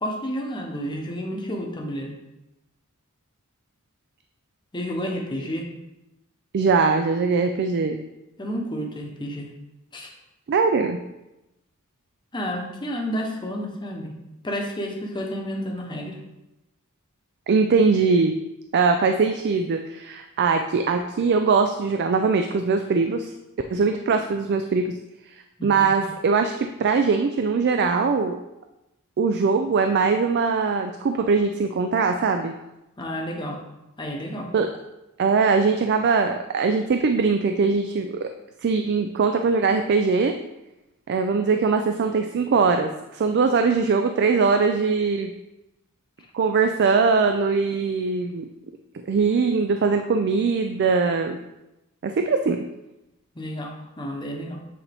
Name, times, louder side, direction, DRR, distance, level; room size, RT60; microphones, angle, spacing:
voice 1, 0.0-2.1 4.7-5.7 8.4-9.5 9.9-10.1 12.3-14.2 14.4-16.2 25.6-25.9 33.0-33.6 34.0-34.5 53.3-54.6, equal, 20° left, 1 dB, 0.9 m, -30 dB
voice 2, 6.5-8.0 10.5-11.0 17.5-18.3 18.7-23.3 23.7-24.9 25.6-28.4 29.2-32.5 34.5-34.7 35.2-38.3 38.6-40.4 41.1-45.3 46.3-48.5 49.1-51.4 52.0-52.6, right 4 dB, 50° right, 6 dB, 0.4 m, -21 dB
8.3 x 4.1 x 3.4 m, 0.95 s
head